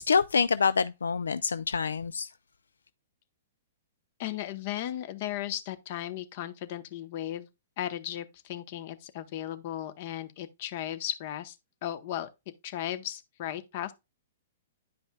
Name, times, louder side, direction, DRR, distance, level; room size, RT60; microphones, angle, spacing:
voice 1, 0.0-2.3, left 5 dB, 85° left, 0.3 m, -26 dB
voice 2, 4.2-7.5 7.8-11.6 11.8-12.3 12.6-13.9, left 12 dB, 50° left, 0.9 m, -36 dB
10.5 x 5.3 x 2.3 m
hypercardioid pair, 125°, 0 cm